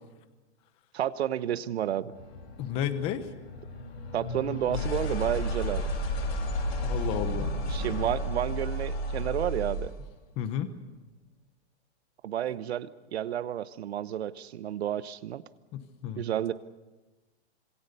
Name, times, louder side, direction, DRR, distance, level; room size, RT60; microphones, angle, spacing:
voice 1, 0.9-2.1 4.1-5.9 7.7-9.9 12.2-15.4 16.2-16.5, right 11 dB, 65° right, 15 dB, 1.1 m, -31 dB
sound 1, 2.1-10.0, equal, 70° left, 7.4 m, -32 dB
voice 2, 2.6-3.3 6.8-7.5 10.4-10.7 15.7-16.2, left 9 dB, 15° left, 11 dB, 1.0 m, -32 dB
26.5 x 22.0 x 6.8 m, 1.2 s
hypercardioid pair, 175°, 34 cm